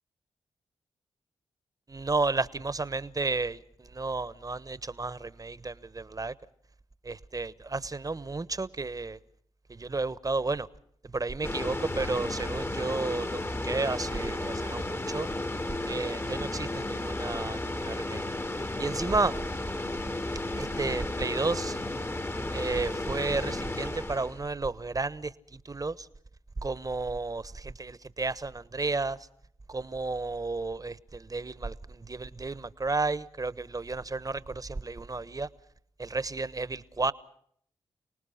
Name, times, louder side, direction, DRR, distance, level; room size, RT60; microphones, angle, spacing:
voice 1, 1.9-6.3 7.0-9.2 9.7-10.7 11.0-15.3 15.8-18.2 18.8-19.3 20.6-21.8 22.5-26.1 26.6-29.2 29.7-35.5 36.0-37.1, right 3 dB, 35° right, 1.2 m, -32 dB
sound 1, 11.4-24.4, left 2 dB, 20° left, 1.3 m, -33 dB
29.5 x 19.0 x 5.8 m
supercardioid pair, 45°, 11 cm